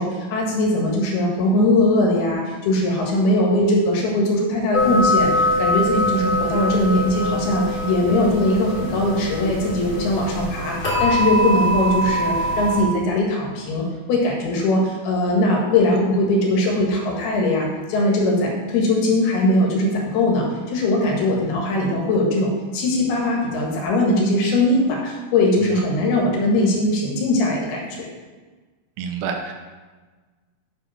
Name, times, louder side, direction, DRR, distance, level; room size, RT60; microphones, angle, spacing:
voice 1, 0.0-28.1, left 1 dB, 90° left, -1 dB, 3.6 m, -20 dB
sound 1, 4.7-12.8, left 1 dB, 30° left, 2.4 m, -23 dB
voice 2, 29.0-29.5, right 5 dB, 90° right, 2 dB, 2.6 m, -29 dB
8.4 x 5.3 x 5.6 m, 1.4 s
omnidirectional pair, 4.4 m